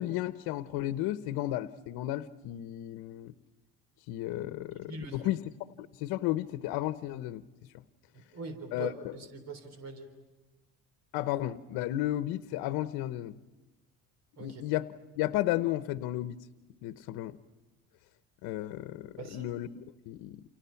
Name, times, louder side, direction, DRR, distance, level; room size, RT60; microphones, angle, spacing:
voice 1, 0.0-3.3 4.1-5.4 5.8-7.4 7.7-7.8 8.7-9.2 11.1-13.4 14.4-14.9 15.2-16.4 16.8-17.4 18.4-20.4, left 14 dB, 75° left, 11 dB, 1.0 m, -33 dB
voice 2, 4.8-5.3 8.1-10.1 14.4-14.6 19.2-19.5, right 3 dB, 45° right, 9 dB, 3.6 m, -42 dB
29.5 x 29.0 x 5.8 m, 1.2 s
cardioid pair, 150°, 37 cm